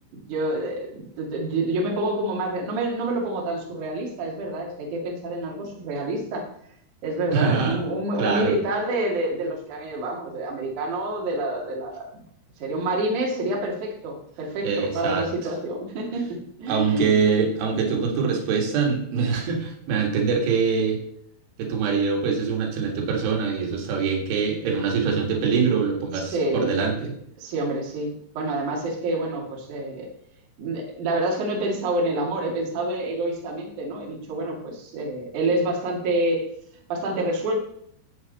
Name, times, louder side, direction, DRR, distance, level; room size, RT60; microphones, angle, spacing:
voice 1, 0.3-6.5 7.0-12.2 12.6-17.2 26.1-26.7 27.4-30.1 30.6-36.5 36.9-37.6, right 1 dB, 50° right, -1 dB, 3.2 m, -27 dB
voice 2, 7.3-7.8 8.2-8.5 14.6-15.3 16.7-21.0 21.6-27.1, right 5 dB, 80° right, 1 dB, 4.3 m, -24 dB
14.5 x 7.7 x 4.1 m, 0.70 s
omnidirectional pair, 5.4 m